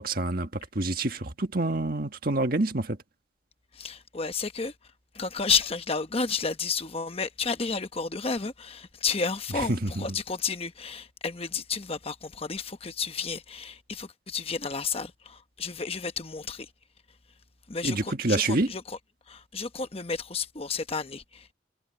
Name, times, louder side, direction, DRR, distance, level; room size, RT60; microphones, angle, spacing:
voice 1, 0.0-3.0 9.5-10.0 17.8-18.7, right 2 dB, 50° right, 1.6 m, -27 dB
voice 2, 3.7-4.7 5.1-16.7 17.7-19.0 19.3-21.5, left 5 dB, 30° left, 1.0 m, -31 dB
head